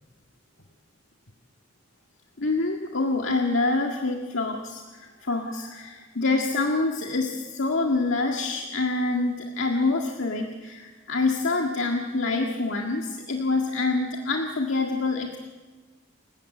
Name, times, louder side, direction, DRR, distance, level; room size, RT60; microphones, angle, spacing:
voice 1, 2.4-15.4, left 3 dB, 75° left, 2 dB, 1.8 m, -26 dB
29.0 x 16.0 x 8.4 m, 1.4 s
head